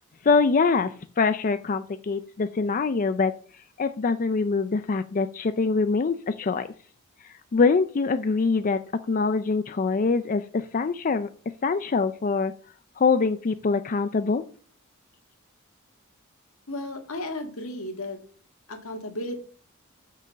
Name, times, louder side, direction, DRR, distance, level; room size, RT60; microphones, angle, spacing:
voice 1, 0.2-3.3 3.8-6.7 7.5-8.8 9.1-11.3 11.6-12.5 13.0-14.4, left 4 dB, 40° left, 10 dB, 0.4 m, -24 dB
voice 2, 16.7-18.2 18.7-19.4, left 1 dB, 80° left, 4 dB, 1.8 m, -34 dB
7.7 x 6.3 x 5.2 m, 0.42 s
head